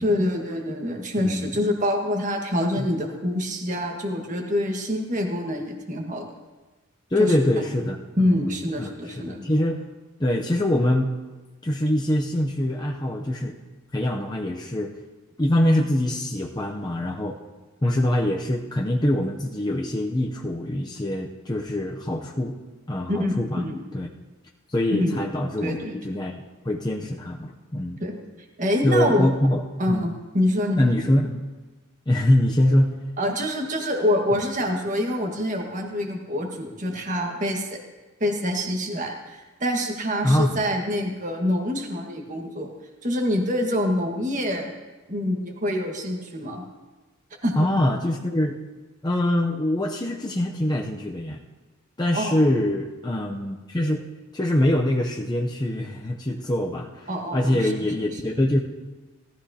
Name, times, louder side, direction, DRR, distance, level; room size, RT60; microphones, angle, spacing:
voice 1, 0.0-6.3 7.2-7.5 8.2-9.5 23.1-23.8 24.9-25.2 25.6-26.0 28.0-28.2 28.6-29.3 29.8-30.9 33.2-37.8 38.2-42.7 43.0-44.7 45.1-46.7 47.4-47.6 52.1-52.4 57.1-57.7, left 1 dB, 35° right, 2 dB, 1.6 m, -26 dB
voice 2, 1.2-1.5 2.8-2.9 7.1-8.0 8.3-8.9 9.2-9.8 10.2-11.1 11.6-13.6 13.9-14.9 15.4-17.4 17.8-22.6 22.9-23.6 23.9-24.1 24.7-25.8 26.0-28.0 28.8-30.1 30.8-31.4 32.1-32.9 40.2-40.6 47.5-48.6 49.0-51.4 52.0-54.1 54.3-58.6, left 1 dB, 20° left, 0 dB, 0.6 m, -24 dB
18.0 x 13.0 x 2.8 m, 1.2 s
head